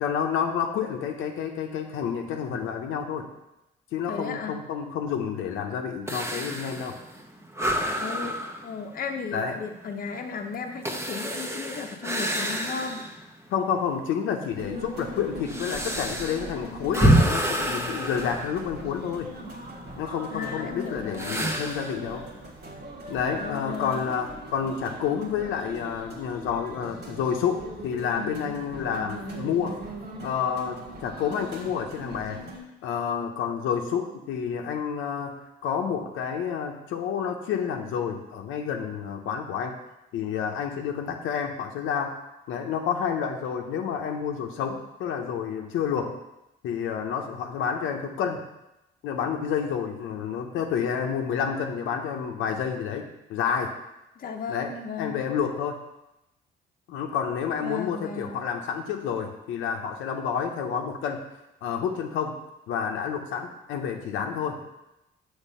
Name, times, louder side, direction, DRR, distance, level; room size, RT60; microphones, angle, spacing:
voice 1, 0.0-3.3 3.9-7.0 9.3-9.5 13.5-19.3 20.0-22.2 23.1-29.8 30.2-32.4 32.8-35.3 35.6-39.8 40.1-42.1 42.5-46.2 46.6-48.4 49.0-53.7 54.5-55.8 56.9-61.2 61.6-62.3 62.7-64.6, left 7 dB, 90° left, 3 dB, 0.7 m, -29 dB
voice 2, 4.1-4.6 8.0-8.3 8.6-13.0 20.3-21.5 23.3-24.0 54.2-55.3 57.6-58.5, left 5 dB, 45° left, 4 dB, 0.7 m, -35 dB
sound 1, 6.1-13.3 13.7-13.8 14.5-19.2 21.1-22.0, right 1 dB, 15° right, 0.8 m, -28 dB
sound 2, 14.5-32.6, right 1 dB, 55° right, 1.6 m, -40 dB
6.5 x 3.3 x 5.4 m, 0.91 s
cardioid pair, 90°, 20 cm